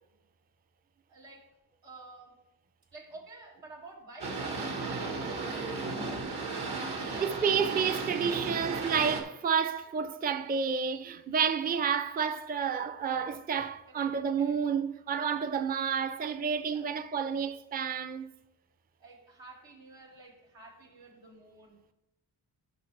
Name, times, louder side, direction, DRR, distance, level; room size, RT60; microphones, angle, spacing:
voice 1, 1.1-1.5 1.8-2.4 2.9-6.6 7.0-7.7 11.6-11.8 13.9-14.6 16.6-16.9 19.0-21.9, right 2 dB, 85° right, 2.4 m, -51 dB
Boat Water vehicle, 4.2-9.2, right 3 dB, 60° right, 1.6 m, -35 dB
voice 2, 5.2-5.7 6.9-18.3, right 7 dB, 20° right, 0.4 m, -30 dB
12.5 x 5.6 x 3.3 m
cardioid pair, 70°, 44 cm